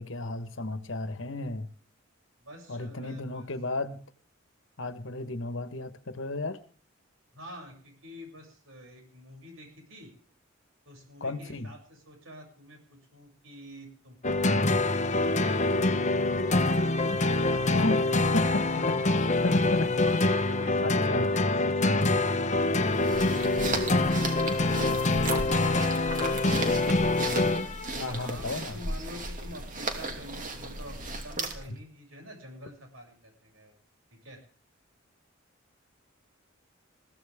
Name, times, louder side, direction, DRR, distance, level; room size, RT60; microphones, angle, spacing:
voice 1, 0.0-1.7 2.7-4.0 4.8-6.6 11.2-11.7 17.7-19.9 20.8-21.3 28.0-28.8, left 2 dB, 65° left, 1.4 m, -33 dB
voice 2, 2.4-3.5 7.3-10.1 10.9-14.8 17.3-18.5 27.9-33.8 34.1-34.4, equal, 80° right, 7.5 m, -48 dB
sound 1, 14.2-28.0, left 2 dB, 35° left, 1.1 m, -25 dB
sound 2, 22.8-31.8, right 2 dB, 40° right, 2.7 m, -35 dB
21.5 x 15.5 x 3.7 m
head